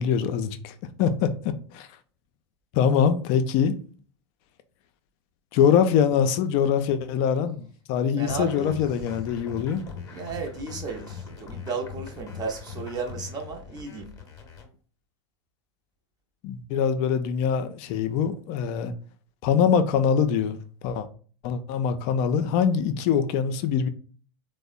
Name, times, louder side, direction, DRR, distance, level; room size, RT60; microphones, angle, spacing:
voice 1, 0.0-1.9 2.7-3.8 5.5-9.9 16.4-18.9 19.4-20.6 20.8-21.1 21.4-23.9, left 7 dB, 45° left, 0.4 m, -23 dB
voice 2, 8.1-8.9 10.1-14.1, right 4 dB, 25° right, 0.6 m, -34 dB
sound 1, 8.3-14.7, left 6 dB, 25° left, 0.7 m, -41 dB
3.4 x 2.0 x 2.4 m
hypercardioid pair, 95°, 15 cm